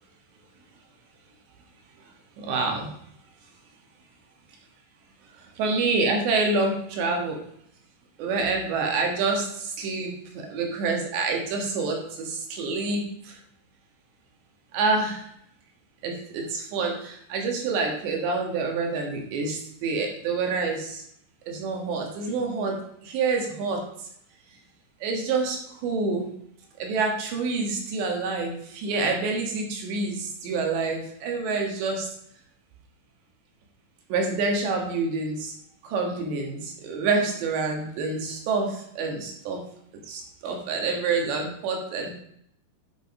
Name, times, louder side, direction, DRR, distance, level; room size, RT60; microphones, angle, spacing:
voice 1, 2.4-2.9 5.6-7.4 8.2-13.4 14.7-15.3 16.0-21.0 21.5-23.8 25.0-26.3 26.8-32.1 34.1-35.5 35.8-39.6 40.1-42.2, right 3 dB, 65° right, 2 dB, 3.5 m, -27 dB
11.0 x 6.7 x 4.9 m, 0.70 s
omnidirectional pair, 5.7 m